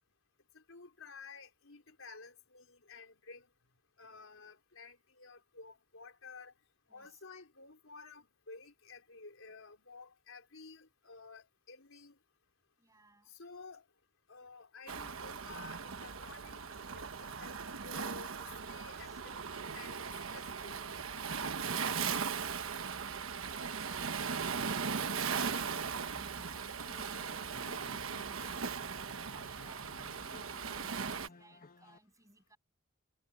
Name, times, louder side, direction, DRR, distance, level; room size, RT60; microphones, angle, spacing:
voice 1, 0.5-3.5 4.0-6.5 6.9-12.2 13.3-13.8 14.3-17.6 17.8-20.8, left 4 dB, 85° left, 4.0 m, -53 dB
voice 2, 6.9-7.2 12.8-13.3 18.8-19.2 23.8-32.6, right 2 dB, 15° right, 7.4 m, -63 dB
Waves surf, 14.9-31.3, right 6 dB, 90° right, 1.2 m, -38 dB
sound 1, 25.2-32.0, left 2 dB, 45° left, 1.2 m, -56 dB
head